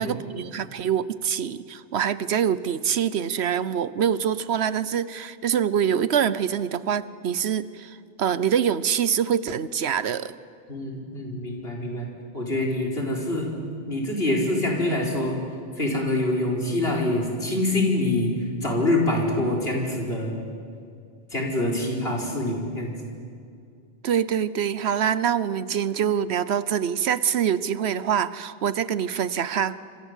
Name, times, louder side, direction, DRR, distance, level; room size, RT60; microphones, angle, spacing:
voice 1, 0.0-10.4 24.0-29.8, right 8 dB, 90° right, 16 dB, 1.1 m, -25 dB
voice 2, 10.7-12.1 12.3-13.5 13.9-15.3 15.8-18.3 18.6-20.3 21.3-22.9, left 1 dB, 70° left, -1 dB, 5.1 m, -25 dB
27.0 x 26.0 x 8.3 m, 2.3 s
omnidirectional pair, 1.1 m